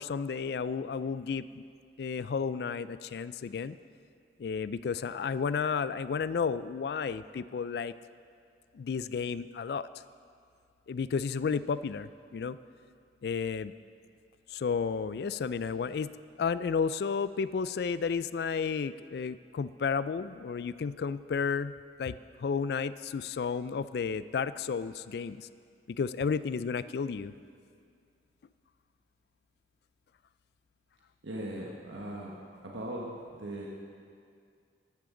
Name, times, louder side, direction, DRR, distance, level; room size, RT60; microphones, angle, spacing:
voice 1, 0.0-1.6 2.0-3.8 4.4-7.9 8.7-9.9 10.9-12.6 13.2-13.7 14.5-16.1 16.4-25.5 26.0-27.3, left 5 dB, 55° left, 15 dB, 0.3 m, -32 dB
voice 2, 31.2-33.7, right 1 dB, 90° right, -3 dB, 1.3 m, -39 dB
13.5 x 12.0 x 3.8 m, 2.3 s
head